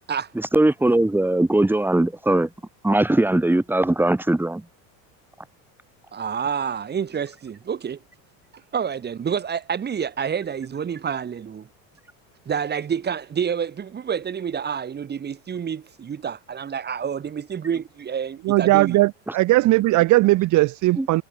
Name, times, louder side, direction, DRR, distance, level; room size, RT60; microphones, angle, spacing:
voice 1, 0.3-2.5 2.8-4.6 21.0-21.1, right 1 dB, 5° right, 4.7 m, -20 dB
voice 2, 6.1-8.0 8.7-11.7 12.5-19.0, right 7 dB, 25° right, 2.9 m, -28 dB
voice 3, 18.4-21.2, right 18 dB, 50° right, 1.5 m, -18 dB
supercardioid pair, 130°, 38 cm